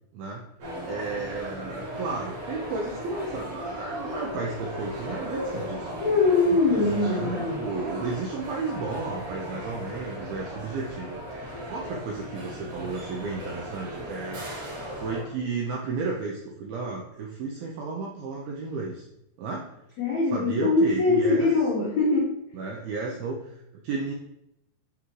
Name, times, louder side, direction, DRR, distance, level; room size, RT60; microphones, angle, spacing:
sound 1, 0.6-15.2, equal, 55° right, 3.7 m, -36 dB
voice 1, 0.8-5.9 6.5-14.5 15.0-19.1 19.4-19.7 20.3-21.5 22.5-24.1, right 4 dB, 85° right, -1 dB, 2.1 m, -33 dB
voice 2, 6.0-7.6 20.0-22.4, left 3 dB, 85° left, -6 dB, 1.5 m, -22 dB
9.1 x 3.8 x 3.1 m, 0.82 s
omnidirectional pair, 5.2 m